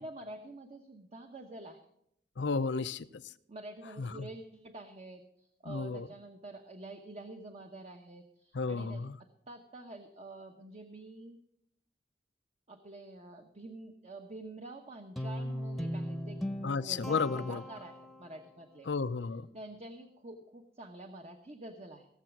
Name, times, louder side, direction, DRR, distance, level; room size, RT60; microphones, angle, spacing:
voice 1, 0.0-1.9 3.5-11.4 12.7-16.5 16.9-18.9 19.5-22.1, right 2 dB, 40° right, 1.0 m, -48 dB
voice 2, 2.4-3.1 4.0-4.3 5.7-6.1 8.5-9.1 16.6-17.6 18.9-19.5, left 4 dB, 85° left, 0.6 m, -33 dB
Guitar, 15.2-18.4, equal, ahead, 0.9 m, -38 dB
16.5 x 7.3 x 6.0 m
head